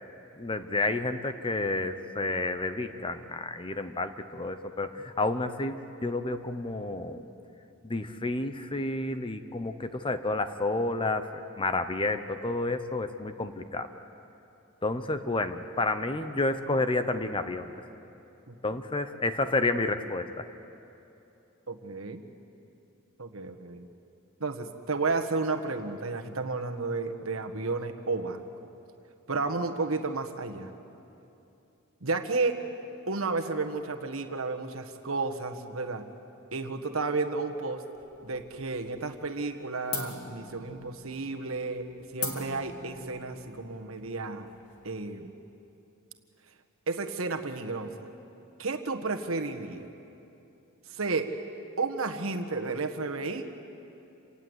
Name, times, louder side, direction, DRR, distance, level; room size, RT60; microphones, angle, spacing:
voice 1, 0.4-5.8 6.0-7.2 7.8-11.3 11.6-13.9 14.8-17.7 18.6-20.4, left 2 dB, 25° left, 10 dB, 0.9 m, -30 dB
voice 2, 21.7-22.2 23.2-23.9 24.4-28.4 29.3-30.7 32.0-32.6 33.1-36.0 36.5-37.8 38.2-41.9 42.1-44.5 44.8-45.3 46.9-48.1 48.6-49.9 50.9-51.3 51.8-53.5, right 3 dB, 70° right, 5 dB, 1.5 m, -32 dB
sound 1, 38.0-38.8 39.1-39.6 39.9-45.1, left 4 dB, 90° left, 3.0 m, -40 dB
28.0 x 18.5 x 8.1 m, 2.8 s
head